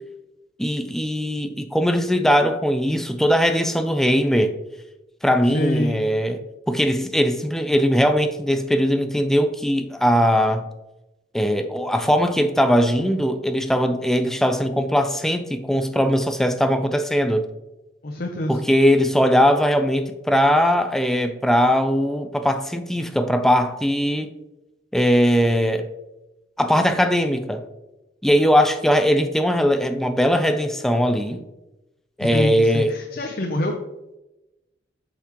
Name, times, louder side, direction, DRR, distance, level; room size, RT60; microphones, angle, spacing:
voice 1, 0.6-4.5 5.2-6.4 6.7-10.7 11.3-17.5 18.5-24.3 24.9-25.9 26.6-27.6 28.2-31.4 32.2-33.0, equal, ahead, 0.4 m, -20 dB
voice 2, 5.4-6.0 18.0-18.6 32.2-33.7, left 1 dB, 55° left, 0.7 m, -25 dB
7.9 x 5.8 x 3.0 m
head